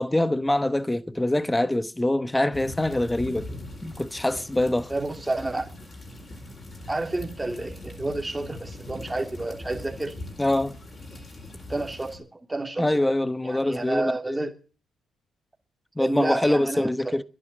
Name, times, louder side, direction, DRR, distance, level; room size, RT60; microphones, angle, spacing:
voice 1, 0.0-3.5 3.8-4.9 10.4-10.7 12.8-14.4 16.0-17.2, left 1 dB, 10° left, 1.0 m, -24 dB
sound 1, 2.5-12.2, left 1 dB, 30° left, 4.4 m, -41 dB
voice 2, 4.9-5.7 6.9-10.2 11.7-13.1 13.4-14.5 16.0-17.2, right 2 dB, 15° right, 2.9 m, -30 dB
11.5 x 11.0 x 8.9 m
cardioid pair, 90°, 0 cm